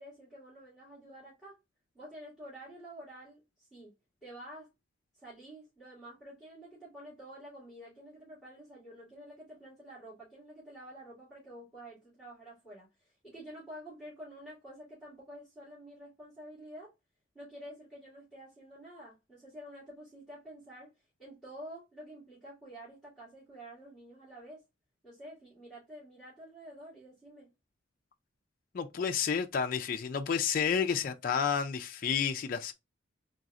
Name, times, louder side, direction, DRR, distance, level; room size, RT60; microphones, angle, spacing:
voice 1, 0.0-1.6 1.9-3.9 4.2-4.7 5.2-16.9 17.3-20.9 21.2-24.6 25.0-27.5, right 1 dB, 5° right, 2.4 m, -49 dB
voice 2, 28.7-32.7, left 7 dB, 45° left, 0.3 m, -30 dB
4.0 x 3.8 x 2.4 m
head